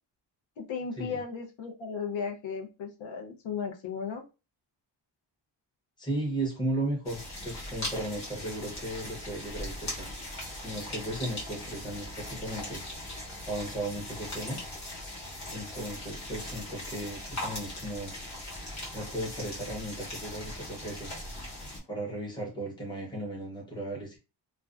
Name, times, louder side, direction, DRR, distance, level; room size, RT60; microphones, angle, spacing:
voice 1, 0.6-4.2, left 6 dB, 80° left, 3 dB, 0.7 m, -35 dB
voice 2, 6.0-10.1 10.6-12.8 13.5-14.6 15.5-18.1 18.9-21.1 21.9-24.2, right 1 dB, 10° left, -2 dB, 0.8 m, -35 dB
sound 1, 7.0-21.8, left 1 dB, 35° left, 1.1 m, -40 dB
2.5 x 2.1 x 2.3 m, 0.29 s
wide cardioid pair, 165°, 46 cm